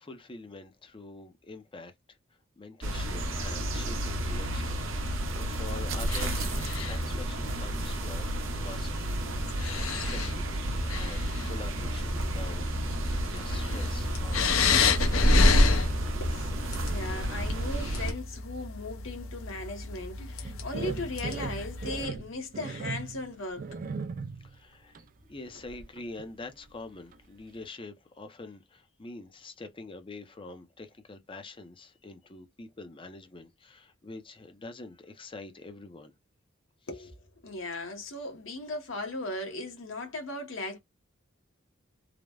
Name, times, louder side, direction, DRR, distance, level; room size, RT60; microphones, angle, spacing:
voice 1, 0.0-1.9 2.6-12.9 13.2-15.5 24.4-25.0 25.3-36.1, left 3 dB, 25° left, 0.5 m, -45 dB
sound 1, 2.8-18.1, right 1 dB, 75° right, 0.8 m, -32 dB
sound 2, 6.1-7.2 8.6-8.7 9.4-10.4 10.8-11.6 12.2-12.3 12.9-22.0, left 2 dB, 90° left, 0.6 m, -28 dB
voice 2, 16.2-16.5 16.8-23.7 36.9-40.8, left 2 dB, 70° left, 1.1 m, -37 dB
sound 3, 20.4-24.6 24.9-25.1 25.6-26.3 26.6-26.7 27.1-27.2, right 4 dB, 40° right, 0.4 m, -38 dB
3.3 x 2.1 x 2.3 m
head